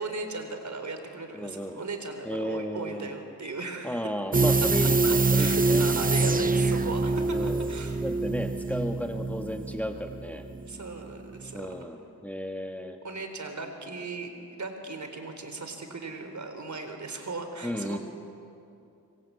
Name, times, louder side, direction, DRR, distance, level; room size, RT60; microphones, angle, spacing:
voice 1, 0.0-4.1 5.0-8.0 10.6-11.9 13.0-18.0, right 3 dB, 55° right, 6 dB, 4.0 m, -37 dB
voice 2, 1.3-1.8 2.2-3.1 3.8-5.9 6.2-6.6 7.3-7.7 8.0-10.5 11.5-13.0 17.6-18.0, equal, 5° left, 4 dB, 1.8 m, -34 dB
sound 1, 4.3-11.1 11.4-11.5, right 3 dB, 25° right, 0.8 m, -25 dB
25.5 x 24.0 x 8.6 m, 2.6 s
cardioid pair, 70°, 35 cm